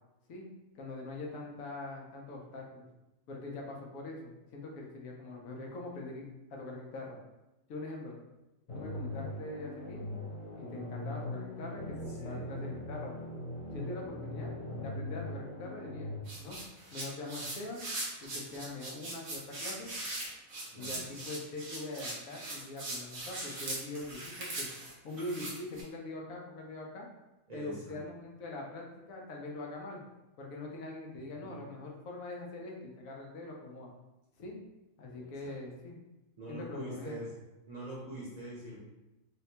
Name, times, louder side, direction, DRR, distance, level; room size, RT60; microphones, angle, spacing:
voice 1, 0.7-2.9 3.3-6.3 6.5-7.2 7.7-8.2 8.7-10.2 10.6-13.1 13.7-16.6 16.9-17.8 18.2-19.9 20.7-24.7 25.0-27.1 27.5-30.0 30.4-33.9 34.4-34.6 35.0-36.0 36.5-37.2, left 2 dB, 80° left, -1 dB, 1.1 m, -43 dB
sound 1, 8.7-16.2, left 2 dB, 35° left, 0.6 m, -40 dB
voice 2, 12.1-12.5 20.7-21.1 27.5-28.0 31.4-31.5 35.0-35.5 36.4-37.3 37.7-38.8, right 1 dB, 40° right, -7 dB, 0.7 m, -44 dB
sound 2, 16.2-25.8, right 2 dB, 85° right, 1.4 m, -40 dB
4.0 x 2.2 x 2.8 m, 0.97 s
omnidirectional pair, 1.4 m